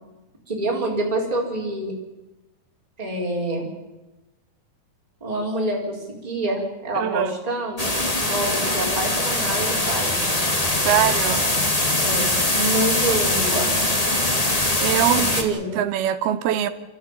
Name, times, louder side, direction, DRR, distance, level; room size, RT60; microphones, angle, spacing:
voice 1, 0.5-1.9 3.0-3.7 5.2-10.2 12.0-13.7 15.1-15.8, right 1 dB, 10° right, -2 dB, 4.6 m, -27 dB
voice 2, 7.0-7.3 10.8-11.5 14.8-16.7, right 11 dB, 85° right, 10 dB, 3.1 m, -23 dB
sound 1, 7.8-15.4, left 1 dB, 20° left, 1.1 m, -22 dB
28.5 x 14.0 x 9.1 m, 1.0 s
omnidirectional pair, 4.4 m